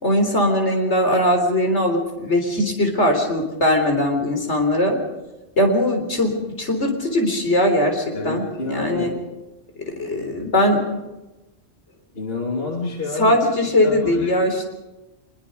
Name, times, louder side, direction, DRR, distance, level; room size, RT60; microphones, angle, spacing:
voice 1, 0.0-5.0 5.6-9.1 9.8-10.8 13.2-14.7, left 1 dB, 70° left, 3 dB, 4.1 m, -20 dB
voice 2, 8.1-9.1 12.1-13.4 13.8-14.3, left 3 dB, 55° left, -1 dB, 2.8 m, -28 dB
24.0 x 22.0 x 5.4 m, 1.0 s
omnidirectional pair, 1.2 m